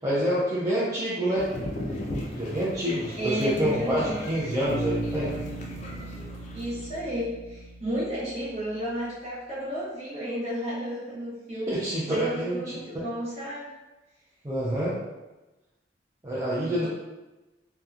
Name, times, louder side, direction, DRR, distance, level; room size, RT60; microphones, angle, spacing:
voice 1, 0.0-1.5 2.3-5.3 11.7-12.8 14.4-15.0 16.2-16.9, right 1 dB, 20° right, -9 dB, 0.4 m, -27 dB
sound 1, 1.4-7.0, left 1 dB, 40° left, 0.4 m, -37 dB
voice 2, 3.2-4.3 6.5-11.7 12.1-13.7 16.8-16.9, equal, 35° right, -8 dB, 0.9 m, -32 dB
Bass guitar, 4.7-8.5, right 1 dB, 5° left, 0.7 m, -37 dB
2.8 x 2.1 x 2.3 m, 1.1 s
head